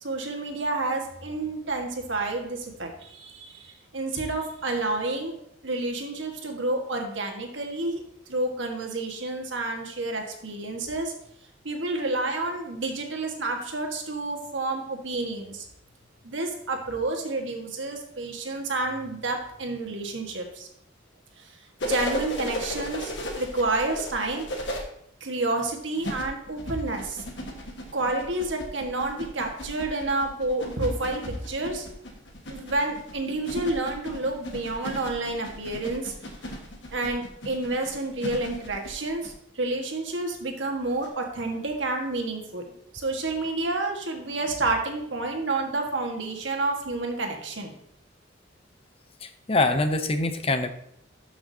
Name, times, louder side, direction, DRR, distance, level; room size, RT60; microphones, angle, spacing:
voice 1, 0.0-5.3 5.6-8.0 8.3-11.1 11.6-15.6 16.2-20.7 21.4-21.6 21.8-24.8 25.2-27.2 27.9-31.9 32.5-36.1 36.4-36.6 36.9-42.6 42.9-47.7, right 2 dB, 70° right, 3 dB, 1.5 m, -29 dB
sound 1, 21.8-24.8 26.0-39.3 41.0-41.1, equal, 65° left, 1.5 m, -36 dB
voice 2, 49.2-50.7, left 2 dB, 30° left, 8 dB, 0.7 m, -24 dB
12.5 x 6.1 x 2.8 m, 0.73 s
head